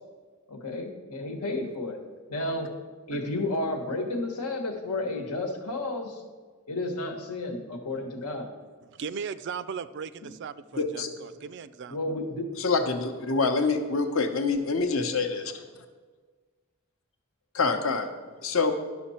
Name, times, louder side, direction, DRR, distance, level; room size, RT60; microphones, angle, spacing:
voice 1, 0.5-2.0 2.3-2.7 3.1-6.2 6.7-8.5 10.2-10.4 11.9-12.5, left 2 dB, 90° left, 3 dB, 1.4 m, -32 dB
voice 2, 8.8-12.0, right 6 dB, 50° right, 15 dB, 0.3 m, -37 dB
voice 3, 10.7-11.1 12.6-15.6 17.5-18.1 18.4-18.7, left 4 dB, 60° left, 7 dB, 0.8 m, -26 dB
11.5 x 6.1 x 4.3 m, 1.5 s
head